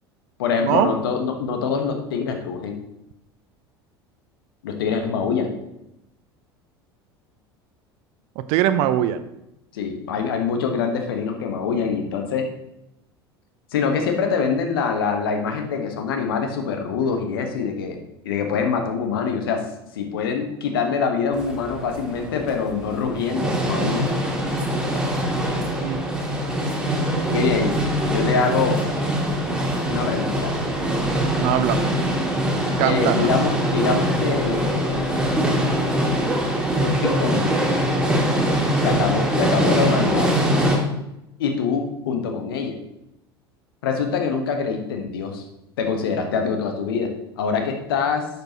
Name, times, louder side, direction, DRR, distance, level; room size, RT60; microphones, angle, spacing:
voice 1, 0.4-2.8 4.6-5.5 9.7-12.5 13.7-18.0 18.2-19.6 19.9-24.1 27.3-27.7 28.1-28.8 29.9-30.5 32.8-35.1 36.8-37.6 38.7-40.4 41.4-42.7 43.8-45.4 45.8-48.3, left 5 dB, 65° left, 4 dB, 1.3 m, -24 dB
voice 2, 8.5-9.2 25.8-26.2 26.5-27.7 31.2-31.8 32.8-33.3, right 11 dB, 50° right, 12 dB, 0.6 m, -23 dB
sound 1, 21.3-40.8, right 1 dB, 5° right, 2.2 m, -23 dB
11.5 x 6.7 x 3.0 m, 0.87 s
figure-of-eight pair, 70°, 13 cm